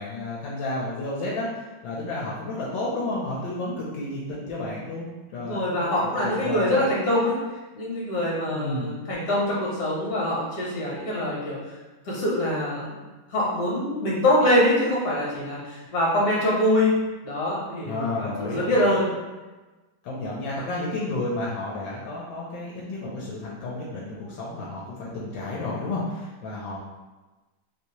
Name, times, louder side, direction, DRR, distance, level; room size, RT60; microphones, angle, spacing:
voice 1, 0.0-6.9 8.5-8.9 17.8-18.9 20.0-26.8, left 2 dB, 80° left, -5 dB, 1.3 m, -31 dB
voice 2, 5.4-7.3 7.7-11.6 12.0-13.0 13.3-16.9 17.2-19.1, left 1 dB, 55° left, -5 dB, 1.3 m, -24 dB
3.2 x 2.6 x 2.8 m, 1.2 s
omnidirectional pair, 2.2 m